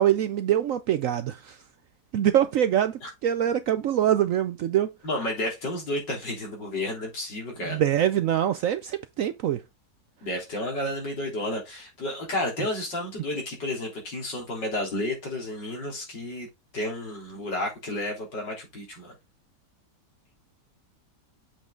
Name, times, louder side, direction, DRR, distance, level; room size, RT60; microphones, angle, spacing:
voice 1, 0.0-1.6 2.1-4.9 7.7-9.6, right 10 dB, 70° right, 0.8 m, -24 dB
voice 2, 5.0-7.8 10.2-16.5 16.7-19.1, left 1 dB, 80° left, 4.0 m, -31 dB
7.4 x 5.5 x 3.8 m
omnidirectional pair, 1.9 m